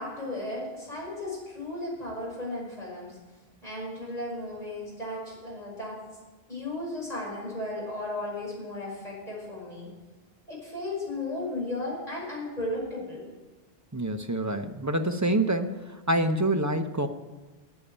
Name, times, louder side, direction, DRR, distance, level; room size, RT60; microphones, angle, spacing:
voice 1, 0.0-3.2 3.6-6.0 6.5-9.9 10.5-13.2, left 2 dB, 40° left, -4 dB, 5.8 m, -35 dB
voice 2, 13.9-17.1, right 1 dB, 20° right, 6 dB, 0.8 m, -26 dB
13.5 x 8.5 x 8.8 m, 1.2 s
omnidirectional pair, 1.1 m